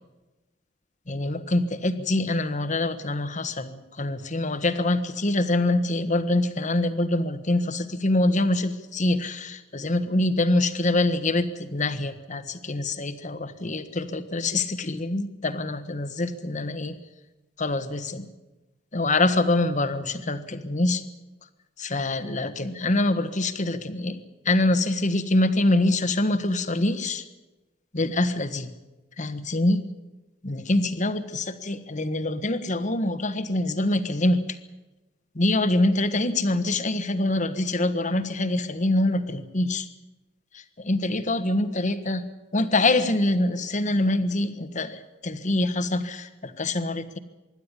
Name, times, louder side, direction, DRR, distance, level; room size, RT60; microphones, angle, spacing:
voice 1, 1.1-17.0 17.6-18.3 18.9-21.0 21.8-24.2 24.4-27.2 27.9-28.7 29.2-29.8 30.4-34.6 35.3-39.9 40.5-42.2 42.5-47.2, left 2 dB, 40° left, 10 dB, 1.4 m, -25 dB
25.5 x 12.0 x 9.9 m, 1.1 s
head